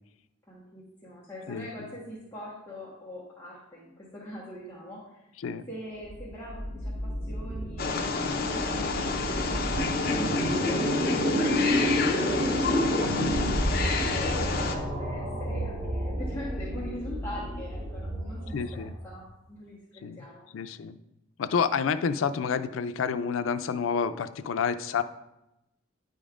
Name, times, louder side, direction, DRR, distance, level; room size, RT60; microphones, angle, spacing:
voice 1, 0.5-5.2 5.7-9.5 10.0-12.6 13.5-20.4, left 1 dB, 15° left, -8 dB, 1.3 m, -42 dB
sound 1, 6.0-19.2, equal, 50° right, 1.7 m, -30 dB
Wild animals, 7.8-14.8, left 4 dB, 50° left, 0.8 m, -29 dB
sound 2, 10.2-15.9, equal, 5° right, 1.3 m, -46 dB
voice 2, 18.5-18.9 20.0-20.2 20.5-21.0 21.4-25.0, left 6 dB, 90° left, 12 dB, 0.4 m, -29 dB
10.0 x 5.2 x 2.5 m, 0.91 s
head